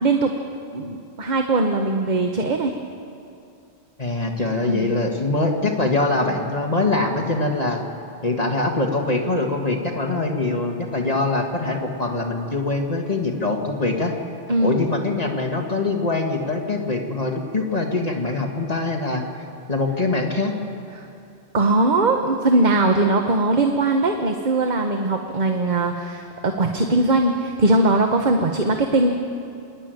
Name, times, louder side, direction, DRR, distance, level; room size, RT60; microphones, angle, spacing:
voice 1, 0.0-0.3 0.7-2.7 4.6-4.9 14.5-14.8 20.9-21.1 21.5-29.1, right 2 dB, 45° right, 4 dB, 1.1 m, -20 dB
voice 2, 4.0-7.8 8.2-14.1 14.6-19.2 19.7-20.5, left 2 dB, 35° left, 2 dB, 1.7 m, -23 dB
26.5 x 11.0 x 9.0 m, 2.5 s
omnidirectional pair, 1.1 m